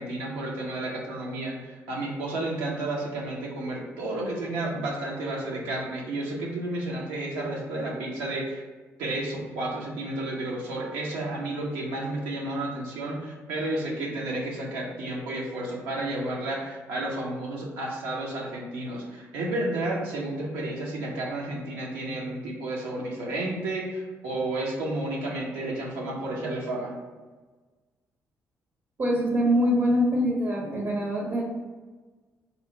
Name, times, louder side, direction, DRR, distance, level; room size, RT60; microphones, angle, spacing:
voice 1, 0.0-8.6 9.0-27.0, right 2 dB, 80° right, -3 dB, 0.7 m, -31 dB
voice 2, 29.0-31.4, equal, 45° right, -2 dB, 0.7 m, -24 dB
2.8 x 2.0 x 4.0 m, 1.3 s
hypercardioid pair, 45°, 7 cm